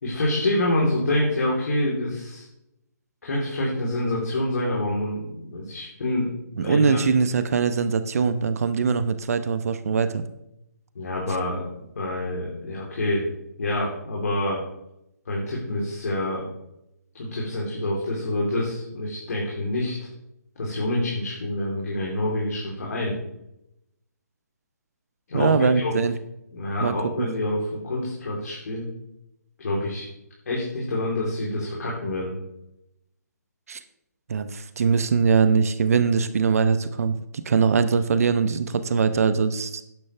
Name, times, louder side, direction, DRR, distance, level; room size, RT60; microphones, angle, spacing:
voice 1, 0.0-2.5 3.2-6.3 6.6-7.0 11.0-11.6 12.0-13.3 13.6-14.6 15.3-16.5 17.1-20.0 20.6-23.2 25.3-25.9 26.5-28.9 29.6-30.0 30.5-32.4, left 1 dB, 60° left, -4 dB, 3.6 m, -27 dB
voice 2, 6.6-10.2 25.3-26.1 26.8-27.3 33.7-33.8 34.3-39.8, right 5 dB, 55° right, 12 dB, 0.9 m, -22 dB
12.0 x 10.5 x 3.4 m, 0.83 s
figure-of-eight pair, 140°, 9 cm